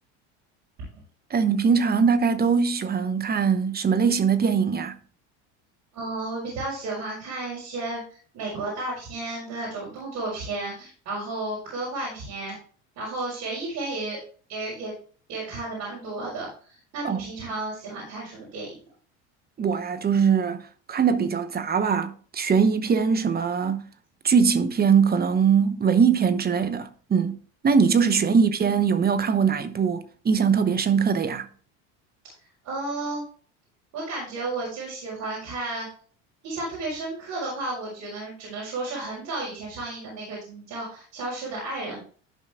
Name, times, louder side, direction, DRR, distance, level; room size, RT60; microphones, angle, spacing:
voice 1, 1.3-4.9 17.0-17.2 19.6-20.6 20.9-23.9 24.2-27.4 27.6-31.5, right 6 dB, 30° right, 1.0 m, -21 dB
voice 2, 5.9-12.6 13.0-14.2 14.5-15.0 15.3-18.7 32.2-32.3 32.6-33.2 33.9-35.9 36.4-42.0, right 2 dB, 60° right, 5.1 m, -33 dB
12.0 x 5.4 x 3.7 m
supercardioid pair, 100°, 34 cm